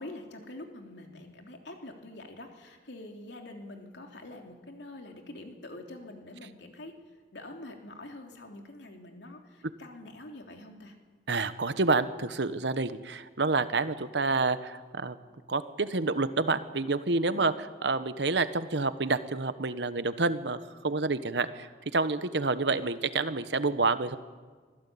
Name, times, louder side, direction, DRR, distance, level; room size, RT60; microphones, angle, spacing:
voice 1, 0.0-7.0 7.3-11.0 17.3-17.6, left 1 dB, 80° left, 3 dB, 3.2 m, -45 dB
voice 2, 11.3-15.2 15.5-17.5 17.8-20.6 20.8-24.2, right 3 dB, 80° right, 12 dB, 1.1 m, -28 dB
24.5 x 16.0 x 8.6 m, 1.5 s
head